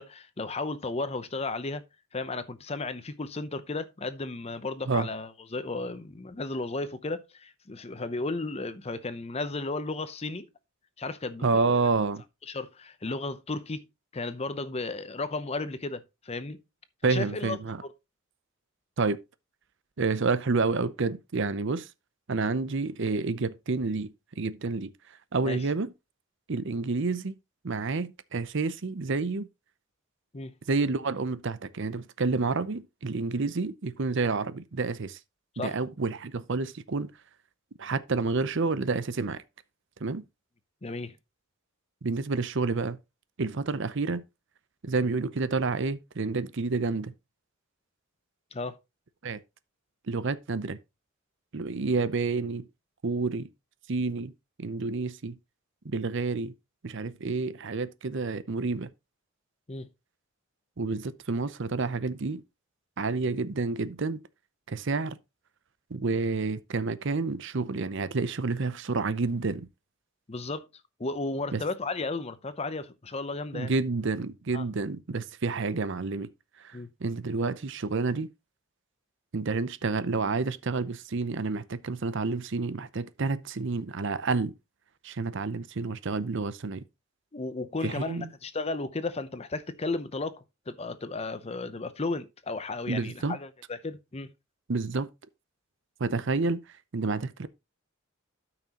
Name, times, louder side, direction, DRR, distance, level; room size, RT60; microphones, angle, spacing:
voice 1, 0.0-1.8 2.1-10.5 11.0-11.8 12.5-13.9 14.1-16.6 17.0-17.6 25.4-25.6 30.3-30.5 35.6-35.8 40.8-41.1 48.5-48.8 59.7-59.9 70.3-70.7 71.0-73.7 74.5-74.6 76.7-76.9 87.3-94.3, left 3 dB, 30° left, 0.7 m, -34 dB
voice 2, 11.4-12.2 17.0-17.8 19.0-19.2 20.0-21.9 22.3-24.9 25.3-25.9 26.5-27.3 27.6-29.5 30.7-35.2 35.6-37.1 37.8-39.4 40.0-40.2 42.0-43.0 43.4-44.2 44.8-47.1 49.2-49.4 50.1-50.8 51.5-52.7 53.0-53.5 53.9-54.3 54.6-55.4 55.8-56.5 56.8-58.9 60.8-62.4 63.0-64.2 64.7-65.2 65.9-69.7 71.5-71.6 73.5-76.3 76.6-78.3 79.3-84.5 85.0-86.8 87.8-88.3 92.9-93.4 94.7-95.1 96.0-96.6 96.9-97.5, right 3 dB, 60° right, 0.7 m, -29 dB
13.0 x 5.9 x 2.9 m
head